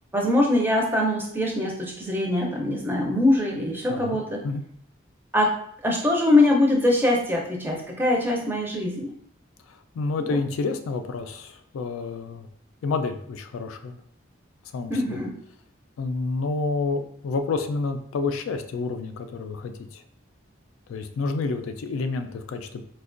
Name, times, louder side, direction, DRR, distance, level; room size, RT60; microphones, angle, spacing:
voice 1, 0.1-4.4 5.3-5.6 5.8-9.1 10.2-10.4 14.9-15.3, left 1 dB, 10° right, -1 dB, 0.4 m, -23 dB
voice 2, 9.7-12.5 12.8-14.0 14.7-15.2 16.0-20.0 20.9-22.8, left 3 dB, 90° left, 7 dB, 0.3 m, -29 dB
4.3 x 2.2 x 2.4 m, 0.66 s
head